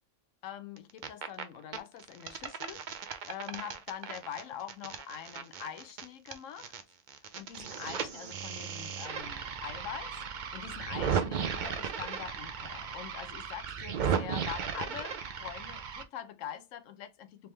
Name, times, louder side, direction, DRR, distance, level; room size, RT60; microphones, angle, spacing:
voice 1, 0.4-6.7 7.4-17.5, left 9 dB, 75° left, 1.0 m, -44 dB
sound 1, 0.8-1.4 1.7-6.8 7.1-16.0, right 7 dB, 60° right, 0.5 m, -36 dB
3.4 x 3.2 x 3.1 m
omnidirectional pair, 1.3 m